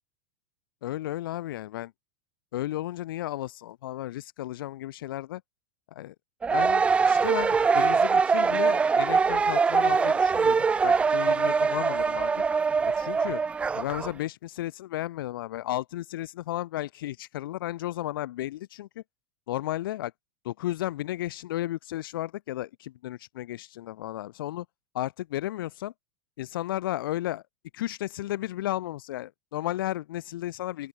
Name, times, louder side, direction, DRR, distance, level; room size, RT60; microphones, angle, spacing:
voice 1, 0.8-1.9 2.5-5.4 5.9-6.1 6.5-12.3 12.9-13.4 13.7-19.0 19.5-20.1 20.4-24.7 24.9-25.9 26.4-27.4 27.7-30.9, left 14 dB, 75° left, 0.8 m, -33 dB
sound 1, 6.4-14.1, right 5 dB, 10° right, 0.4 m, -23 dB
open air
supercardioid pair, 150°, 12 cm